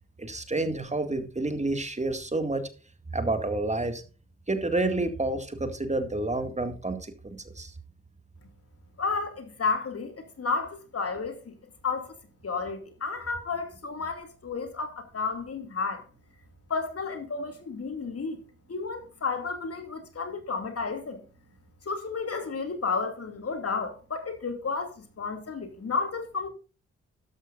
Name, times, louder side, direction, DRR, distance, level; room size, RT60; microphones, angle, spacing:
voice 1, 0.2-2.6 3.1-4.0 4.5-7.7, right 2 dB, 25° right, 2.1 m, -29 dB
voice 2, 9.0-11.5 11.8-12.1 12.4-16.0 16.7-18.4 18.7-21.2 21.9-26.5, left 4 dB, 50° left, 2.5 m, -32 dB
12.0 x 12.0 x 2.5 m
supercardioid pair, 45°, 29 cm